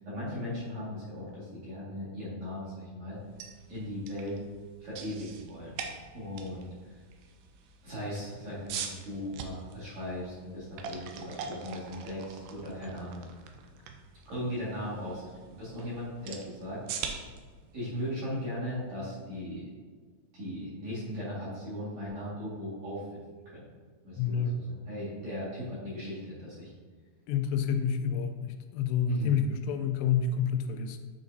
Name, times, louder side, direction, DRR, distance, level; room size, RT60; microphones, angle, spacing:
voice 1, 0.0-3.2 3.7-4.4 4.8-5.8 6.1-6.9 7.8-13.3 14.3-16.8 17.7-19.7 20.3-23.6 24.0-24.6 24.9-26.7 29.0-29.4, left 1 dB, 50° right, -9 dB, 2.6 m, -38 dB
sound 1, 3.2-19.1, right 6 dB, 85° right, 2.1 m, -44 dB
voice 2, 24.2-24.6 27.3-31.1, left 7 dB, 90° left, 6 dB, 2.7 m, -29 dB
9.5 x 4.9 x 2.6 m, 1.5 s
omnidirectional pair, 4.8 m